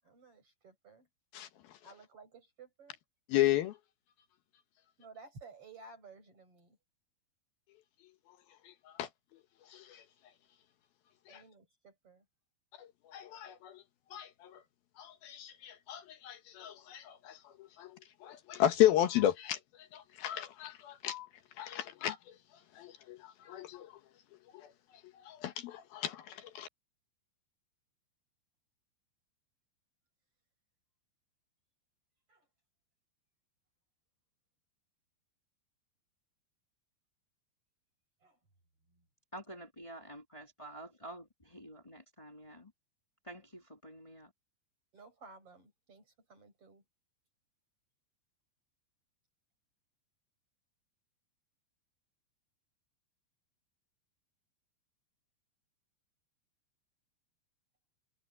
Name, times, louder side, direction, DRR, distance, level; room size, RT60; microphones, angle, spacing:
voice 1, 0.0-1.1 1.8-3.0 5.0-6.8 11.3-12.3 32.3-32.5 38.2-38.4 38.9-39.1 44.9-46.8, right 3 dB, 30° right, 7.9 m, -55 dB
voice 2, 3.3-3.8 8.7-8.8 9.0-9.1 9.7-10.0 11.3-11.4 12.8-13.8 14.1-14.6 15.0-19.6 19.9-21.3 21.6-22.2 22.8-23.9 24.5-24.7 25.3-26.7, left 12 dB, 70° left, 2.5 m, -33 dB
voice 3, 39.3-42.7 43.2-44.3, right 1 dB, 10° left, 1.5 m, -49 dB
omnidirectional pair, 5.5 m